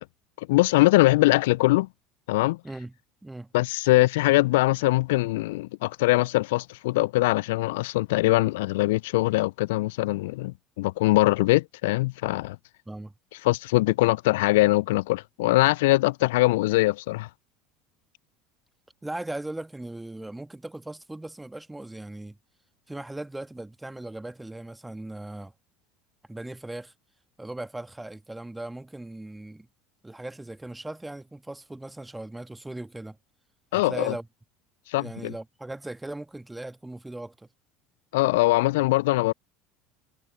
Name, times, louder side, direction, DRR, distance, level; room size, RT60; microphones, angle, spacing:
voice 1, 0.4-1.9 2.3-2.6 3.5-12.6 13.4-17.3 33.7-34.1 34.9-35.3 38.1-39.3, left 20 dB, 70° left, 0.3 m, -22 dB
voice 2, 3.2-3.5 12.8-13.1 19.0-22.4 22.9-25.5 26.3-26.9 27.4-29.7 30.0-33.2 33.7-34.3 35.0-37.5, right 2 dB, 10° right, 1.5 m, -38 dB
figure-of-eight pair, 70°, 0 cm